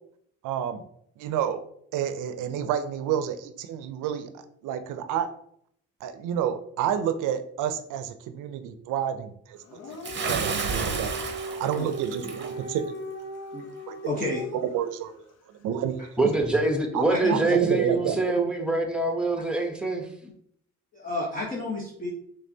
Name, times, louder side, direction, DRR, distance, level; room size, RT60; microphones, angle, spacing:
voice 1, 0.4-0.8 1.2-1.6 1.9-5.3 6.0-9.6 10.3-11.1 11.4-12.8 13.9-14.0 14.5-15.3 15.6-16.1 16.9-18.8, right 9 dB, 90° right, 10 dB, 0.5 m, -29 dB
Dog, 9.6-14.8, right 1 dB, 60° left, 0.7 m, -38 dB
Bathtub (filling or washing) / Splash splatter, 10.0-12.5, right 5 dB, 40° right, 0.7 m, -31 dB
voice 2, 14.1-14.4 17.1-17.5 20.9-22.1, left 2 dB, 25° left, -4 dB, 1.1 m, -30 dB
voice 3, 16.2-20.1, right 2 dB, 5° right, 3 dB, 0.9 m, -25 dB
5.3 x 3.4 x 2.7 m, 0.68 s
cardioid pair, 90°, 30 cm